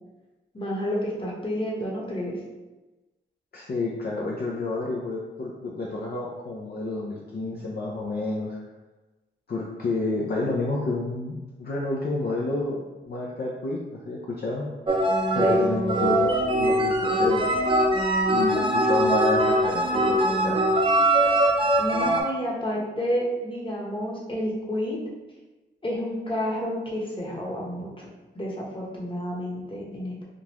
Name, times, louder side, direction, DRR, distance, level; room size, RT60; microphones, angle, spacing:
voice 1, 0.5-2.4 15.4-15.6 21.8-25.0 25.8-28.1 28.3-30.2, equal, 25° left, -3 dB, 1.1 m, -30 dB
voice 2, 3.5-8.6 9.5-14.7 15.3-17.5 18.2-20.6, left 2 dB, 50° left, -4 dB, 0.6 m, -30 dB
sound 1, 14.9-22.2, right 1 dB, 25° right, 0.6 m, -22 dB
3.7 x 2.4 x 3.0 m, 1.1 s
cardioid pair, 55°, 20 cm